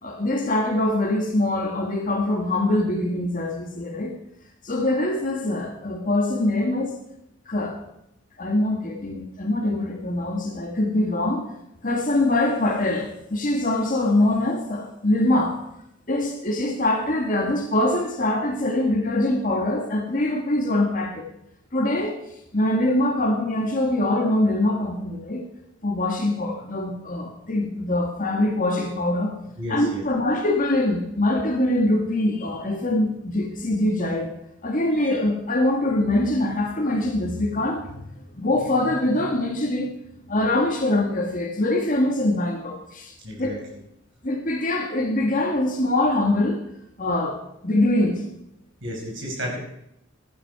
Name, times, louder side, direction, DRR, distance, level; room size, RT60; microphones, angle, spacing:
voice 1, 0.0-4.1 4.6-7.0 7.5-7.8 8.4-11.5 11.8-15.6 16.1-21.3 21.7-22.2 22.5-25.4 25.8-29.3 29.7-34.3 34.6-38.0 38.3-39.9 40.3-43.5 44.2-46.6 47.0-48.2, left 1 dB, 40° left, 2 dB, 1.6 m, -23 dB
voice 2, 29.6-30.0 35.0-35.1 43.2-43.6 48.8-49.6, equal, 60° right, -1 dB, 5.3 m, -32 dB
15.0 x 11.0 x 4.8 m, 0.79 s
head